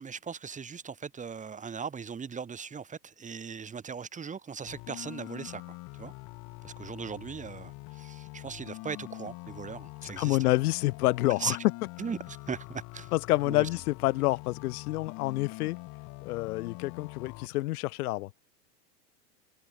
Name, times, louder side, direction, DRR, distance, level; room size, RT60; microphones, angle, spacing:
voice 1, 0.0-6.1 6.6-10.4 11.4-11.6 12.0-13.1 13.5-13.7, right 6 dB, 15° right, 5.6 m, -39 dB
sound 1, 4.7-17.5, left 23 dB, 35° left, 1.8 m, -44 dB
voice 2, 10.2-11.6 13.1-15.8 16.2-18.3, left 19 dB, 65° left, 0.9 m, -28 dB
supercardioid pair, 140°, 48 cm